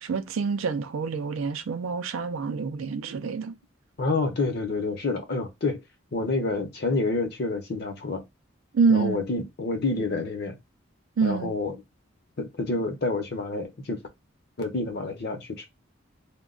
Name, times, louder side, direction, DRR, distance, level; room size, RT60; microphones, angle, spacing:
voice 1, 0.0-3.6 8.7-9.2 11.2-11.5, right 5 dB, 85° right, 0.4 m, -26 dB
voice 2, 4.0-5.8 6.1-8.2 8.9-10.6 11.2-11.7 12.4-14.0 14.6-15.6, left 3 dB, 50° left, 0.7 m, -28 dB
2.3 x 2.2 x 3.7 m
head